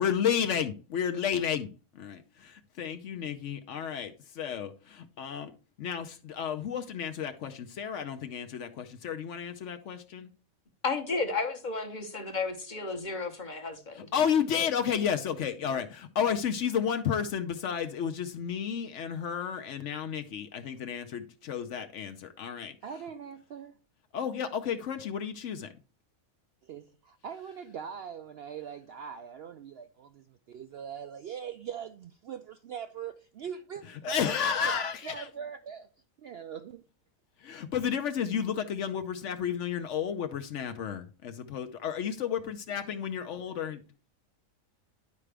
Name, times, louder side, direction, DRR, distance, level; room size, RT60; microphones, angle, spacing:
voice 1, 0.0-1.7 1.9-5.5 5.8-10.3 13.9-22.7 24.1-25.7 34.0-35.3 37.5-43.8, left 8 dB, 65° left, 0.9 m, -32 dB
voice 2, 10.8-14.1, left 4 dB, 35° left, 1.0 m, -33 dB
voice 3, 22.8-23.8 26.6-34.2 35.0-35.9 36.2-36.8, right 7 dB, 65° right, 0.6 m, -41 dB
11.0 x 4.8 x 3.3 m
omnidirectional pair, 1.5 m